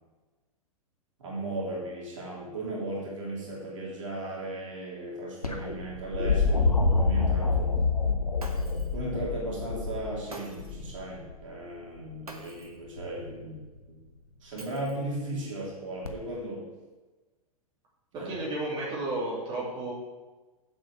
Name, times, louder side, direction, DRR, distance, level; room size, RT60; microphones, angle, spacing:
voice 1, 1.2-7.7 8.9-14.0 14.4-16.7 18.1-18.3, right 1 dB, 60° right, -3 dB, 3.2 m, -36 dB
sound 1, 5.4-11.4 13.0-13.5 16.1-16.2, left 4 dB, 85° left, 1.2 m, -27 dB
Shatter, 8.4-9.0 10.3-10.9 12.3-12.8 14.6-15.2, right 2 dB, 80° right, 1.4 m, -46 dB
voice 2, 18.1-19.9, right 2 dB, 25° right, -5 dB, 3.0 m, -32 dB
7.8 x 7.8 x 6.0 m, 1.2 s
figure-of-eight pair, 100°, 19 cm